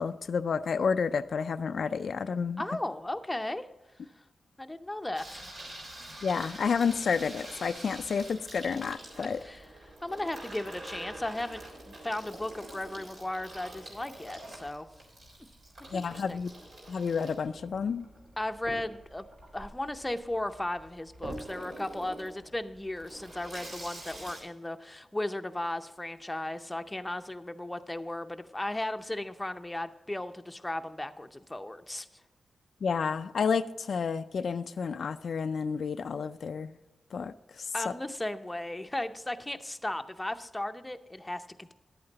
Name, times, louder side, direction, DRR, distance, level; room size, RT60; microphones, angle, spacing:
voice 1, 0.0-2.6 6.2-9.4 15.9-16.5 16.9-18.1 32.8-36.7 37.1-37.9, left 6 dB, 75° left, 10 dB, 0.3 m, -30 dB
voice 2, 2.6-3.7 4.6-5.5 9.4-11.6 12.0-14.9 15.9-16.4 18.4-19.3 19.5-32.1 37.7-41.7, left 1 dB, 15° left, 8 dB, 0.6 m, -36 dB
Water tap faucet / Sink (filling or washing), 5.1-24.4, right 1 dB, 70° right, 3.6 m, -46 dB
10.5 x 8.7 x 4.0 m, 1.0 s
cardioid pair, 65°, 0 cm